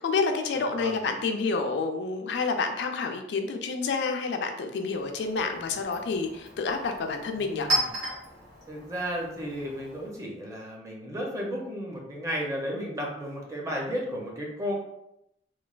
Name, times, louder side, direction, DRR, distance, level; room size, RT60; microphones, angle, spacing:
voice 1, 0.0-7.7, left 4 dB, 70° left, 4 dB, 0.3 m, -29 dB
voice 2, 0.5-1.0 7.4-7.9 8.7-14.8, equal, 20° right, -1 dB, 0.5 m, -34 dB
Chink clink, 4.8-10.3, right 1 dB, 90° right, 1.4 m, -35 dB
3.1 x 2.2 x 2.3 m, 0.82 s
head